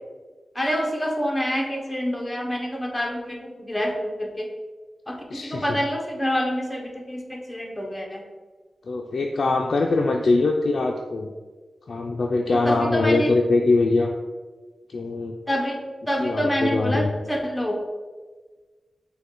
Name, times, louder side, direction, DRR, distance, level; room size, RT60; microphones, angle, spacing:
voice 1, 0.5-4.5 5.1-8.2 12.5-13.3 15.5-17.8, equal, 10° left, 0 dB, 0.7 m, -27 dB
voice 2, 5.3-5.7 8.9-11.3 11.9-14.1 14.9-15.3 16.2-17.1, left 3 dB, 65° left, 1 dB, 0.3 m, -22 dB
5.1 x 2.2 x 4.4 m, 1.4 s
wide cardioid pair, 115°, 0 cm